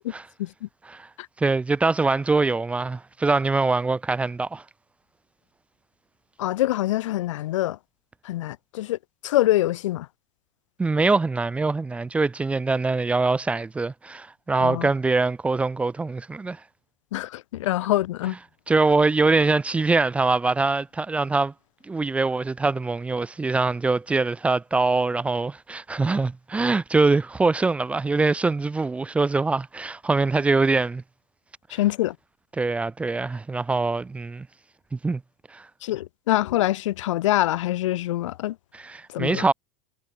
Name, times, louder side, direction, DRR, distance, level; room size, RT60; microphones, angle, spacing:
voice 1, 1.4-4.6 10.8-16.6 18.7-21.5 21.9-31.0 32.6-34.5 34.9-35.2 35.5-35.7 38.7-39.5, right 3 dB, 10° right, 0.9 m, -23 dB
voice 2, 6.4-7.8 8.2-10.1 14.6-14.9 17.1-18.3 31.7-32.2 35.8-38.6 39.1-39.4, left 15 dB, 90° left, 2.6 m, -25 dB
supercardioid pair, 165°, 16 cm